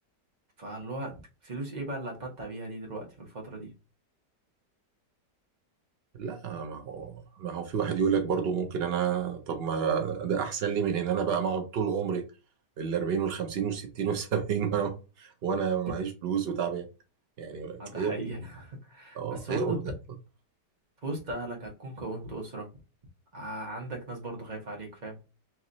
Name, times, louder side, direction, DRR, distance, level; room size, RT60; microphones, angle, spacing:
voice 1, 0.6-3.7 17.8-19.8 21.0-22.7 23.3-25.2, right 2 dB, 30° right, 1.1 m, -37 dB
voice 2, 6.1-12.2 12.8-16.9 17.4-18.2 19.2-19.8, right 7 dB, 85° right, 0.5 m, -30 dB
3.5 x 3.1 x 3.9 m
omnidirectional pair, 1.8 m